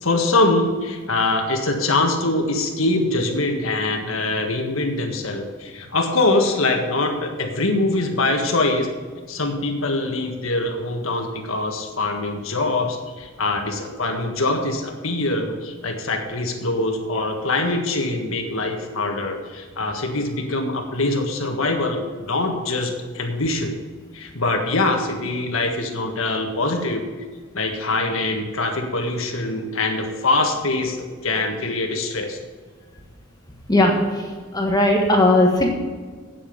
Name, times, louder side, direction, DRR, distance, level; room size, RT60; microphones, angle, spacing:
voice 1, 0.0-8.9 9.3-23.7 24.1-27.0 27.5-32.4, left 2 dB, 75° left, 3 dB, 1.6 m, -23 dB
voice 2, 33.7-35.7, left 1 dB, 20° left, 1 dB, 1.5 m, -18 dB
9.1 x 8.6 x 6.9 m, 1.5 s
head